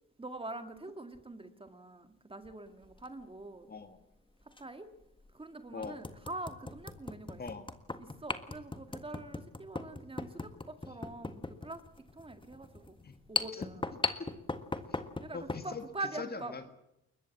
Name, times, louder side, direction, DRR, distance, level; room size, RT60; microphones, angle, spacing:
voice 1, 0.2-3.7 4.6-4.9 5.3-7.4 8.0-11.8 12.1-13.0 13.3-13.8 15.2-16.5, right 2 dB, 20° right, 8 dB, 2.0 m, -44 dB
sound 1, 2.8-3.1 4.5-4.6 5.2-5.3 5.8-15.7, left 3 dB, 15° left, 1.6 m, -39 dB
voice 2, 3.7-4.0 5.7-6.0 7.4-7.7 13.0-13.2 13.5-13.7 13.9-14.3 14.9-15.0 15.3-15.8 16.2-16.7, left 4 dB, 30° left, 9 dB, 2.0 m, -42 dB
23.0 x 20.5 x 7.3 m, 0.86 s
cardioid pair, 90°, 30 cm